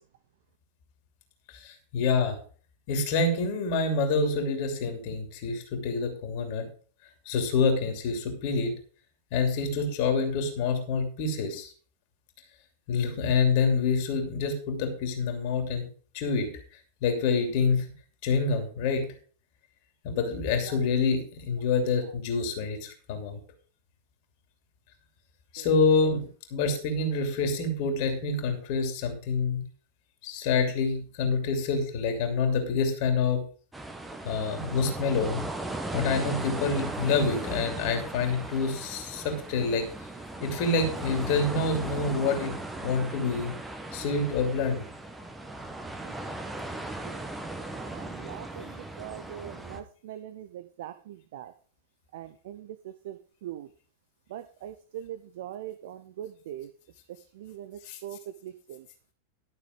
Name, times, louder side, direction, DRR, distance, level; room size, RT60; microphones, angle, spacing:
voice 1, 1.5-2.4 2.9-6.7 7.2-8.7 9.3-11.7 12.9-15.9 16.1-16.5 17.0-17.8 18.2-19.1 20.0-23.4 25.5-29.6 30.2-33.4 34.2-35.4 35.9-39.9 40.4-43.5 43.9-44.8 57.8-58.0, left 4 dB, 45° left, 5 dB, 2.8 m, -27 dB
sound 1, 33.7-49.8, right 2 dB, 10° right, 1.6 m, -37 dB
voice 2, 47.9-48.6 49.0-50.5 50.8-50.9 51.3-51.5 52.1-52.5 53.1-53.2 53.4-53.7 54.3-55.1 55.4-56.7 57.4-57.7 58.0-58.2, right 11 dB, 55° right, 11 dB, 0.7 m, -40 dB
12.5 x 6.7 x 5.2 m, 0.42 s
figure-of-eight pair, 90°, 0 cm